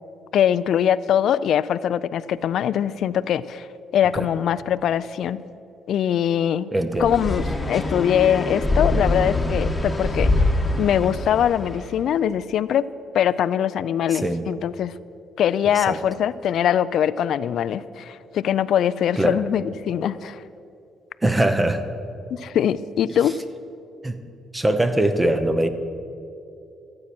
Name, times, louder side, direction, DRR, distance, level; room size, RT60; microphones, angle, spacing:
voice 1, 0.3-3.7 3.9-5.4 5.9-6.7 7.0-10.5 10.8-12.8 13.1-14.9 15.4-20.4 22.3-23.4, left 9 dB, 70° left, 17 dB, 0.3 m, -22 dB
voice 2, 6.7-7.2 14.1-14.4 15.7-16.0 19.2-19.4 21.2-21.9 23.1-23.3 24.0-24.2 24.5-25.7, right 1 dB, 15° right, 9 dB, 0.8 m, -22 dB
sound 1, 7.0-11.9, left 2 dB, 15° left, 1.2 m, -24 dB
14.5 x 8.6 x 6.0 m, 2.7 s
cardioid pair, 90°, 0 cm